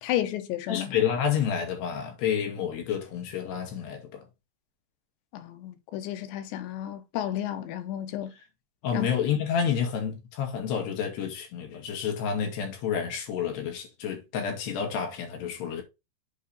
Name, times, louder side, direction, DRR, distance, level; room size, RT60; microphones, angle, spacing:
voice 1, 0.0-0.9 5.3-8.3 8.9-9.1, left 12 dB, 90° left, 3.2 m, -32 dB
voice 2, 0.7-4.3 8.8-15.8, left 8 dB, 70° left, 4.0 m, -29 dB
8.1 x 4.7 x 4.2 m
omnidirectional pair, 5.0 m